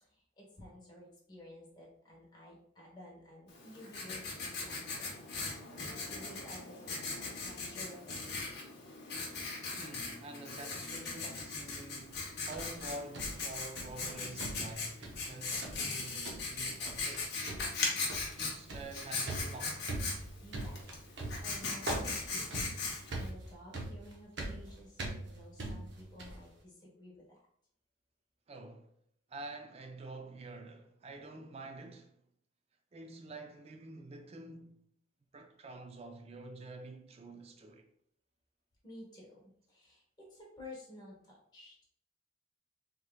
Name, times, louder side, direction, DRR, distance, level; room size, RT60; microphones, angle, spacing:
voice 1, 0.0-5.5 6.1-7.0 7.2-8.6 20.4-20.9 21.2-27.4 38.8-41.8, left 1 dB, 20° left, 1.1 m, -53 dB
Writing, 3.5-23.3, left 3 dB, 55° left, 0.8 m, -39 dB
voice 2, 9.8-17.3 18.4-20.0 28.5-28.9 29.3-32.2 32.9-34.9 35.3-37.9, right 2 dB, 30° right, 0.4 m, -48 dB
sound 1, 12.1-14.1 14.4-15.3 15.6-16.0 16.2-16.6 16.9-17.2 17.5-26.5, right 2 dB, 60° right, 0.7 m, -42 dB
3.3 x 3.1 x 2.3 m
head